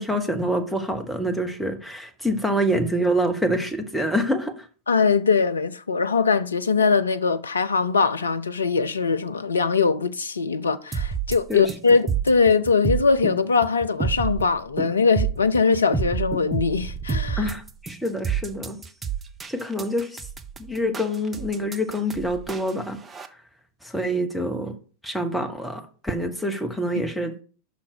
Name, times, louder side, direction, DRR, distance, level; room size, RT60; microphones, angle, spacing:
voice 1, 0.0-4.7 11.5-11.7 17.4-18.8 19.5-20.2 20.6-23.0 23.8-24.8 25.0-27.4, equal, ahead, 1.1 m, -26 dB
voice 2, 4.9-17.5, left 5 dB, 75° left, 0.5 m, -21 dB
sound 1, 10.9-23.3, right 6 dB, 15° right, 0.7 m, -29 dB
5.8 x 5.0 x 6.3 m
figure-of-eight pair, 90°, 0 cm